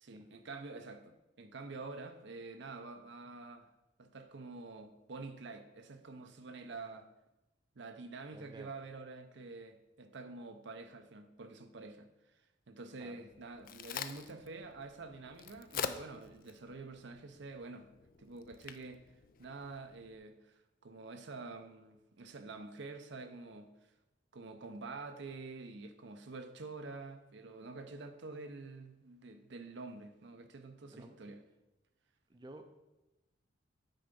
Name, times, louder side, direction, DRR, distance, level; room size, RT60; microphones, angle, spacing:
voice 1, 0.0-3.7 4.0-7.1 7.7-12.4 12.7-17.9 18.2-19.0 19.4-23.9 24.3-31.4, right 3 dB, 65° right, 7 dB, 0.7 m, -48 dB
voice 2, 8.3-8.7 13.0-13.2 30.9-31.2 32.3-32.8, right 2 dB, 25° right, 6 dB, 0.5 m, -52 dB
Crack, 13.3-20.2, left 7 dB, 50° left, 0.4 m, -46 dB
9.2 x 3.9 x 5.3 m, 0.97 s
head